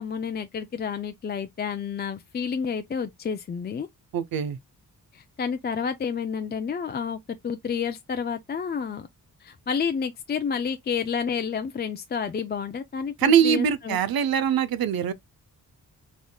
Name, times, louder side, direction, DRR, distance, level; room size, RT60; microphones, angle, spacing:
voice 1, 0.0-3.9 5.1-7.2 7.4-9.1 9.4-14.0, left 6 dB, 30° left, 0.4 m, -30 dB
voice 2, 4.1-4.6 13.2-15.1, right 8 dB, 90° right, 0.8 m, -22 dB
6.2 x 3.6 x 2.2 m
wide cardioid pair, 150°, 35 cm